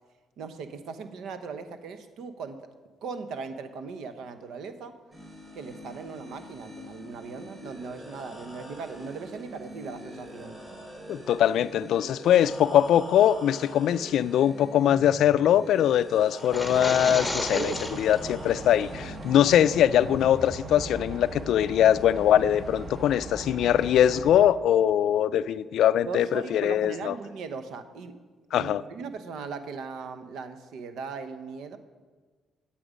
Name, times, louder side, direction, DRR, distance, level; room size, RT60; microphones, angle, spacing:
voice 1, 0.4-2.7 3.0-5.0 5.5-10.8 17.5-18.0 26.0-28.2 28.5-31.8, right 5 dB, 80° right, 10 dB, 0.8 m, -38 dB
sound 1, 5.1-24.1, equal, 20° right, 3.8 m, -44 dB
voice 2, 11.1-17.7 18.0-27.1 28.5-28.8, left 10 dB, 75° left, 16 dB, 0.3 m, -22 dB
sound 2, 16.4-18.2, left 1 dB, 5° left, 1.4 m, -32 dB
sound 3, 16.5-24.4, right 2 dB, 45° right, 1.2 m, -40 dB
9.6 x 8.5 x 5.0 m, 1.4 s
cardioid pair, 90°, 0 cm